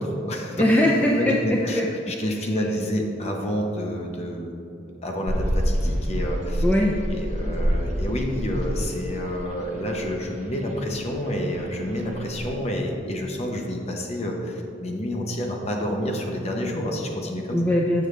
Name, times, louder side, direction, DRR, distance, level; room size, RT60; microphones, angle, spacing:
voice 1, 0.0-0.6 1.2-1.8 2.1-4.7 5.0-6.6 7.1-17.6, equal, 35° left, 1 dB, 0.7 m, -29 dB
voice 2, 0.6-1.9 6.6-7.0 17.5-18.1, left 1 dB, 10° left, -2 dB, 0.4 m, -21 dB
sound 1, 5.3-12.6, equal, 40° right, 0.7 m, -28 dB
6.7 x 6.3 x 3.2 m, 2.7 s
head